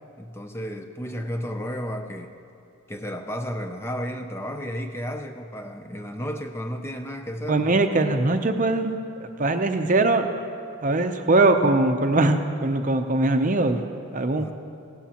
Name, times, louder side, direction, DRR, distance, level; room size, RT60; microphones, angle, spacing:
voice 1, 0.2-2.4 2.9-7.7 14.4-14.5, equal, 10° left, 5 dB, 0.4 m, -33 dB
voice 2, 7.5-10.3 10.8-13.8 14.1-14.5, right 2 dB, 35° right, 7 dB, 0.6 m, -21 dB
17.5 x 14.5 x 2.9 m, 2.5 s
head